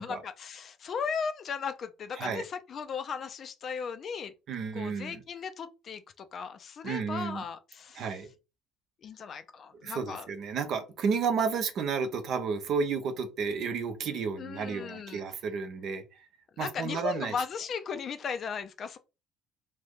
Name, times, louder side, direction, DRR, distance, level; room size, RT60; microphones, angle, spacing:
voice 1, 0.0-4.3 4.7-8.2 9.0-10.3 14.4-15.2 16.6-19.0, left 6 dB, 45° left, 0.4 m, -36 dB
voice 2, 4.5-5.2 6.8-7.4 8.0-8.3 9.8-16.0 16.6-17.3, right 5 dB, 50° right, 0.7 m, -32 dB
2.7 x 2.6 x 3.5 m
figure-of-eight pair, 55°, 0 cm